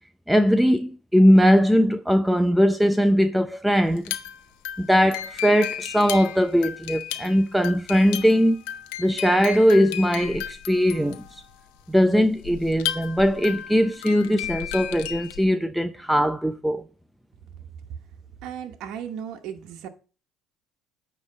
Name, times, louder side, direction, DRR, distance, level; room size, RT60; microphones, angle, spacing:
voice 1, 0.3-4.1 4.8-8.6 9.0-11.2 11.9-16.8, equal, ahead, 0.5 m, -20 dB
sound 1, 3.9-15.4, left 11 dB, 90° left, 0.8 m, -34 dB
voice 2, 18.4-19.9, right 8 dB, 70° right, 1.0 m, -35 dB
9.4 x 3.1 x 6.5 m
supercardioid pair, 95°, 0 cm